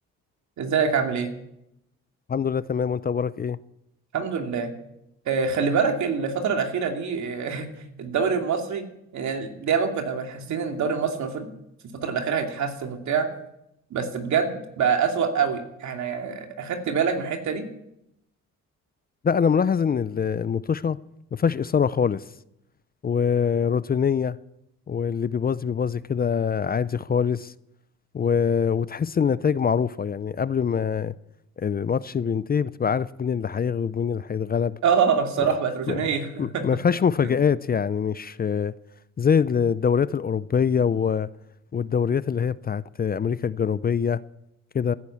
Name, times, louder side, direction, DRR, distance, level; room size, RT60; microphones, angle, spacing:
voice 1, 0.6-1.3 4.1-4.7 5.3-7.7 8.0-8.8 9.1-11.5 12.0-13.3 13.9-17.7 34.8-36.6 37.2-37.3, right 6 dB, 70° right, 2.6 m, -25 dB
voice 2, 2.3-3.6 19.2-21.0 21.3-22.2 23.0-24.4 24.9-27.5 28.1-31.1 31.6-34.7 35.9-36.0 36.4-38.7 39.2-41.3 41.7-44.2 44.7-44.9, left 7 dB, 30° left, 0.5 m, -24 dB
15.5 x 10.5 x 8.5 m
cardioid pair, 90°, 30 cm